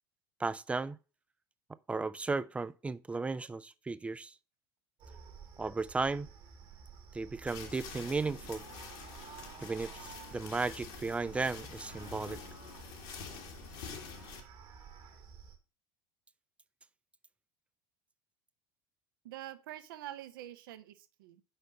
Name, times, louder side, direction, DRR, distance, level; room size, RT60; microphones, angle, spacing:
voice 1, 0.4-1.0 1.9-4.3 5.6-6.3 7.1-8.6 9.6-9.9 10.3-12.4, right 3 dB, 10° right, 0.4 m, -35 dB
sound 1, 5.0-15.6, right 6 dB, 40° right, 1.4 m, -52 dB
sound 2, 7.5-14.4, left 6 dB, 55° left, 1.5 m, -47 dB
voice 2, 19.2-21.4, right 13 dB, 65° right, 0.7 m, -46 dB
5.8 x 5.2 x 5.3 m
figure-of-eight pair, 70°, 12 cm